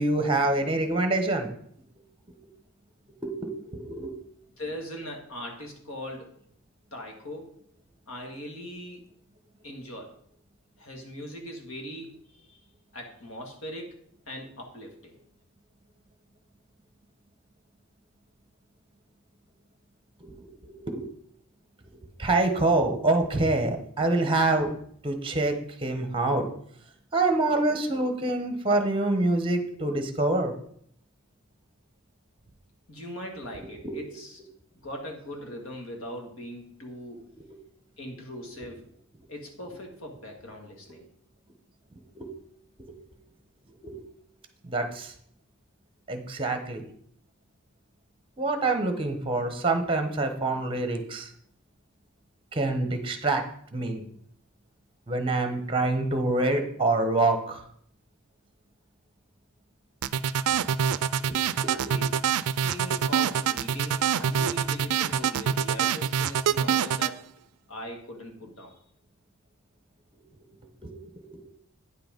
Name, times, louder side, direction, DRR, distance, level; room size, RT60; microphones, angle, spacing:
voice 1, 0.0-1.5 2.3-2.4 3.2-4.1 20.2-21.1 22.2-24.7 25.0-26.5 27.1-30.5 33.8-33.9 42.1-42.3 42.8-42.9 43.7-44.0 44.6-45.1 46.1-46.8 48.4-51.3 52.5-53.4 53.7-54.0 55.1-57.6 61.2-61.4 61.6-62.0 70.8-71.4, right 2 dB, 25° right, 7 dB, 1.0 m, -26 dB
voice 2, 4.6-6.3 6.9-7.5 8.1-9.0 9.6-10.1 10.8-12.6 12.9-14.0 14.3-15.2 32.9-34.4 34.8-37.2 38.0-38.9 39.3-41.1 61.4-62.0 62.6-67.2 67.7-68.8, equal, 65° left, 2 dB, 2.0 m, -40 dB
sound 1, 60.0-67.1, right 8 dB, 85° right, 0.4 m, -25 dB
9.3 x 5.9 x 5.2 m, 0.66 s
head